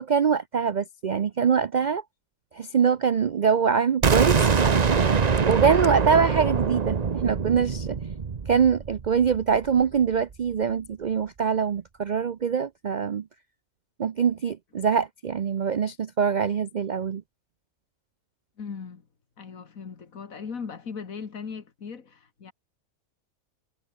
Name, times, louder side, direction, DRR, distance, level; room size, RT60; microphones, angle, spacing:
voice 1, 0.0-2.0 2.5-8.0 8.5-13.2 14.0-17.2, right 6 dB, 65° right, 0.4 m, -24 dB
sound 1, 4.0-9.8, right 5 dB, 35° right, 0.8 m, -24 dB
voice 2, 18.6-19.0 19.4-22.5, left 6 dB, 65° left, 2.2 m, -38 dB
omnidirectional pair, 1.6 m